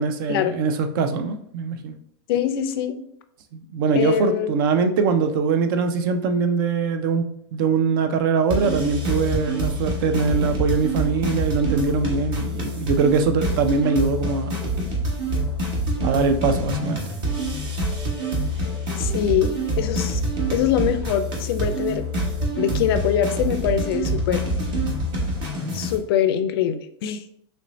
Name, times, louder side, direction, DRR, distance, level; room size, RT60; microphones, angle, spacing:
voice 1, 0.0-2.0 3.5-14.5 16.0-17.0, right 5 dB, 50° right, 8 dB, 0.5 m, -22 dB
voice 2, 2.3-3.0 3.9-4.5 19.0-20.2 20.5-22.0 22.6-24.5 25.7-27.2, left 9 dB, 60° left, 9 dB, 0.4 m, -23 dB
sound 1, 8.5-26.0, right 1 dB, 35° right, 1.0 m, -26 dB
3.2 x 2.6 x 3.0 m, 0.67 s
supercardioid pair, 145°, 14 cm